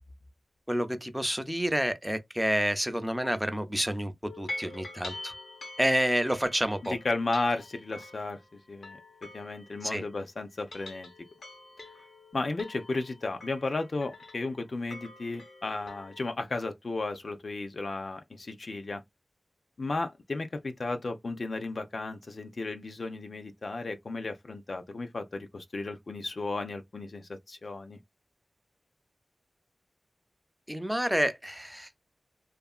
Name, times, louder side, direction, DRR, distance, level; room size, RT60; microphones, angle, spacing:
voice 1, 0.7-5.3 5.8-7.0 9.8-10.0 30.7-31.9, equal, 5° right, 0.5 m, -29 dB
sound 1, 4.2-10.2 10.5-16.3, left 2 dB, 80° left, 0.9 m, -46 dB
voice 2, 6.8-8.4 8.7-9.0 9.3-11.1 12.3-19.0 19.8-28.0, left 3 dB, 65° left, 0.4 m, -34 dB
2.8 x 2.4 x 2.3 m
wide cardioid pair, 65°, 0 cm